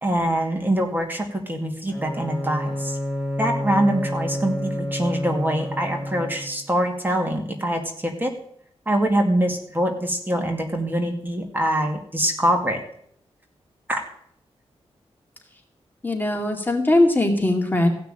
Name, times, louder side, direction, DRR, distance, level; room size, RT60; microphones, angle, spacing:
voice 1, 0.0-3.0 3.4-8.3 8.9-12.8 13.9-14.0, right 1 dB, 20° right, 3 dB, 2.3 m, -24 dB
Bowed string instrument, 1.9-6.7, left 1 dB, ahead, 3.2 m, -29 dB
voice 2, 16.0-17.9, left 1 dB, 15° left, 2 dB, 2.3 m, -20 dB
15.5 x 6.0 x 8.8 m, 0.67 s
wide cardioid pair, 95°, 11 cm